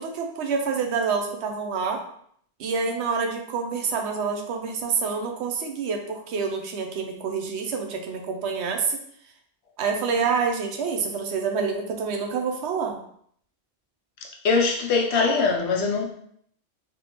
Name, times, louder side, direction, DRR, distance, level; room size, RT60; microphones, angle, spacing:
voice 1, 0.0-2.0 2.6-9.0 9.8-13.0, right 5 dB, 80° right, 3 dB, 0.9 m, -27 dB
voice 2, 14.4-16.1, left 4 dB, 80° left, 1 dB, 0.9 m, -22 dB
3.4 x 2.2 x 2.9 m, 0.65 s
omnidirectional pair, 1.1 m